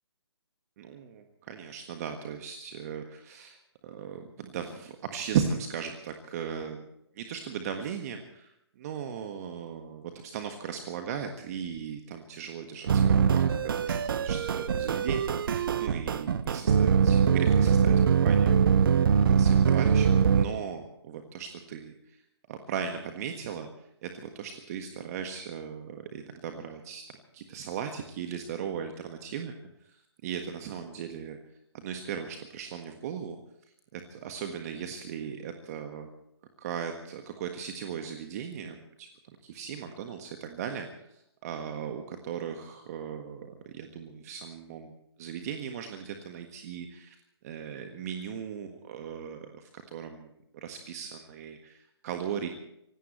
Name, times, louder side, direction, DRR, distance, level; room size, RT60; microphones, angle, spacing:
voice 1, 0.8-6.8 7.1-22.2 22.5-27.1 27.3-29.6 29.8-31.4 31.7-33.4 33.9-36.1 36.6-39.1 39.4-47.2 47.4-52.5, right 7 dB, 35° right, 5 dB, 1.6 m, -37 dB
sound 1, 12.9-20.5, right 7 dB, 55° right, 1.0 m, -23 dB
25.5 x 17.5 x 3.2 m, 0.78 s
figure-of-eight pair, 140°, 14 cm